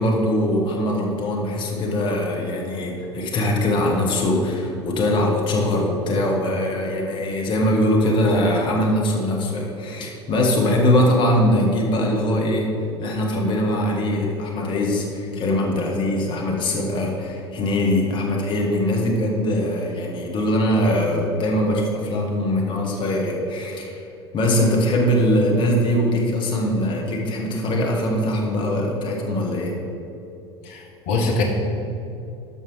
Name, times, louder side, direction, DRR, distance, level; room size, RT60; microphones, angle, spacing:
voice 1, 0.0-12.7 13.0-24.0 24.3-29.7, left 1 dB, 35° left, -1 dB, 1.9 m, -22 dB
voice 2, 30.7-31.4, left 3 dB, 50° left, 0 dB, 1.7 m, -23 dB
13.0 x 5.4 x 4.8 m, 2.8 s
figure-of-eight pair, 75°, 14 cm